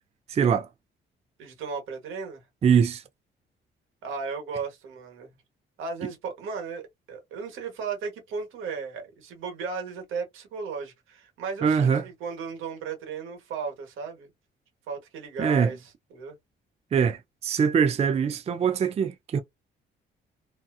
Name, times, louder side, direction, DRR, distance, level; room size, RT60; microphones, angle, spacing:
voice 1, 0.3-0.7 2.6-3.0 11.6-12.0 15.4-15.7 16.9-19.4, right 7 dB, 35° right, 0.4 m, -23 dB
voice 2, 1.4-2.4 4.0-5.4 5.8-14.3 14.9-16.4, right 5 dB, 85° right, 1.2 m, -35 dB
2.8 x 2.3 x 2.3 m
cardioid pair, 90°, 20 cm